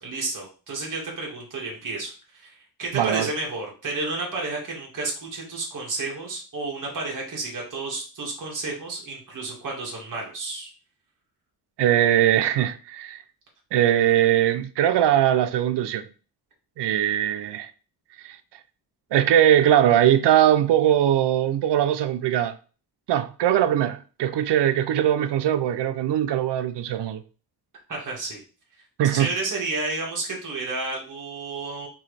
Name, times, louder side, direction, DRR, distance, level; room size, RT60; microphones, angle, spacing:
voice 1, 0.0-10.7 27.9-28.4 29.0-31.9, right 3 dB, 45° right, 1.9 m, -31 dB
voice 2, 2.9-3.3 11.8-13.2 13.7-16.1 16.8-17.7 18.2-18.4 19.1-22.5 23.1-27.2 29.0-29.3, right 11 dB, 75° right, 0.6 m, -21 dB
4.6 x 3.2 x 3.3 m
cardioid pair, 105°, 42 cm